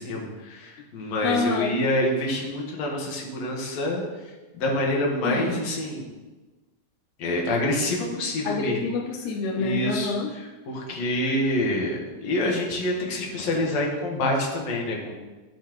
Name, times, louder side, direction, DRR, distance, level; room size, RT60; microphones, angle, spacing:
voice 1, 0.0-6.1 7.2-8.8 9.6-15.1, left 1 dB, 55° left, -2 dB, 2.2 m, -27 dB
voice 2, 1.2-1.8 5.2-5.6 8.5-10.3, left 4 dB, 80° left, 1 dB, 1.7 m, -27 dB
14.0 x 5.5 x 3.0 m, 1.2 s
omnidirectional pair, 4.2 m